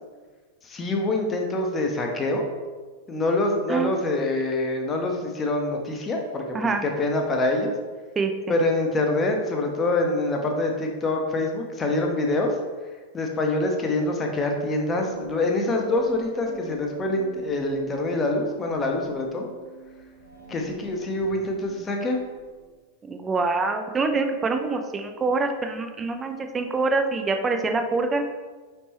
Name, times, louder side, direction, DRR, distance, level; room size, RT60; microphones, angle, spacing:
voice 1, 0.6-2.4 3.1-6.6 6.8-7.7 8.5-12.5 13.1-19.5 20.5-22.2, left 2 dB, 20° left, 2 dB, 0.7 m, -25 dB
voice 2, 8.2-8.6 23.0-28.2, right 3 dB, 20° right, 6 dB, 0.4 m, -25 dB
sound 1, 15.0-22.7, right 2 dB, 80° right, 0.9 m, -43 dB
5.1 x 3.3 x 2.9 m, 1.4 s
figure-of-eight pair, 90°, 0 cm